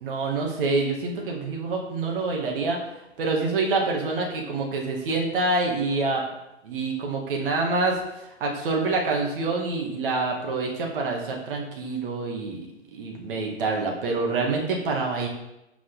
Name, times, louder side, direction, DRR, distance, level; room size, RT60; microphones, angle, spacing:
voice 1, 0.0-2.8 3.2-6.2 6.6-8.0 8.4-15.3, right 3 dB, 50° right, 0 dB, 2.2 m, -26 dB
12.5 x 4.9 x 4.1 m, 0.91 s
figure-of-eight pair, 130°, 35 cm